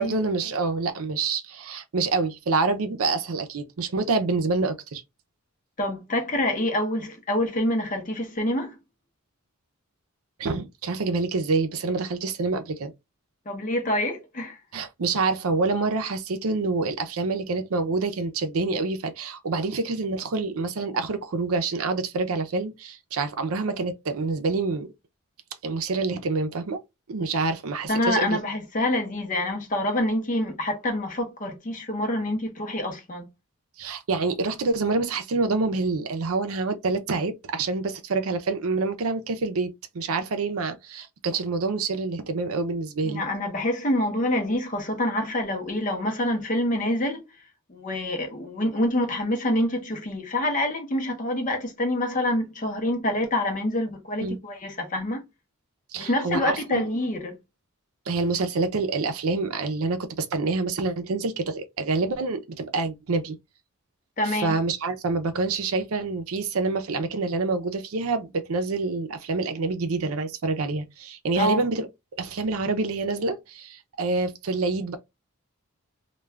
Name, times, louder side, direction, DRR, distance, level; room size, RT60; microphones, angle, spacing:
voice 1, 0.0-5.0 10.4-12.9 14.7-24.9 25.6-26.8 27.1-28.4 33.8-43.2 54.2-54.4 55.9-56.8 58.1-63.4 64.2-71.9 72.2-75.0, right 3 dB, 80° right, 0.5 m, -27 dB
voice 2, 5.8-8.8 13.5-14.6 27.9-33.3 43.0-47.2 47.7-55.2 55.9-57.4 64.2-64.6 71.4-71.6, left 1 dB, 35° left, 0.6 m, -26 dB
2.3 x 2.2 x 3.2 m
head